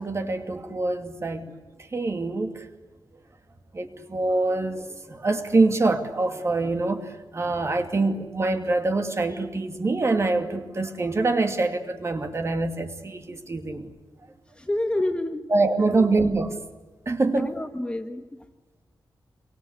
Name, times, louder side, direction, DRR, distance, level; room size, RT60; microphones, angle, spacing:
voice 1, 0.0-1.5 1.8-2.7 3.7-13.9 15.5-16.6 17.1-17.6, right 3 dB, 35° right, 2.6 m, -25 dB
voice 2, 14.6-15.5 15.8-16.1 17.3-18.2, left 1 dB, 10° left, 1.5 m, -28 dB
27.5 x 24.5 x 8.2 m
wide cardioid pair, 155°, 8 cm